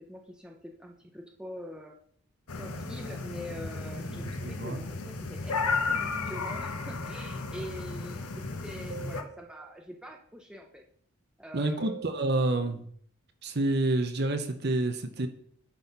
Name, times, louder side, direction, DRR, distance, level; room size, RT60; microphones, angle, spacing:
voice 1, 0.0-2.0 2.5-10.8 11.4-12.4, equal, 5° right, 1 dB, 0.7 m, -45 dB
sound 1, 2.5-9.2, left 4 dB, 85° left, 0.9 m, -34 dB
voice 2, 4.2-4.8 11.5-12.8 13.4-15.3, right 2 dB, 45° right, 7 dB, 0.9 m, -28 dB
sound 2, 8.9-10.0 11.8-12.6, right 8 dB, 80° right, 0.5 m, -45 dB
10.0 x 4.2 x 5.3 m, 0.63 s
head